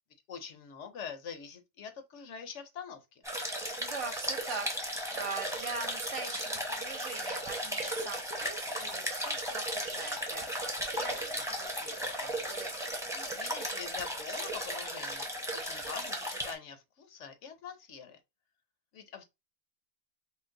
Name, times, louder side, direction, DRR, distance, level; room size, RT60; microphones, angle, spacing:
voice 1, 0.3-3.2 13.1-18.2 18.9-19.2, left 7 dB, 70° left, 1.0 m, -45 dB
sound 1, 3.2-16.5, equal, 5° right, 0.8 m, -36 dB
voice 2, 3.8-12.7, right 4 dB, 65° right, 1.3 m, -42 dB
4.5 x 2.1 x 3.8 m
omnidirectional pair, 1.3 m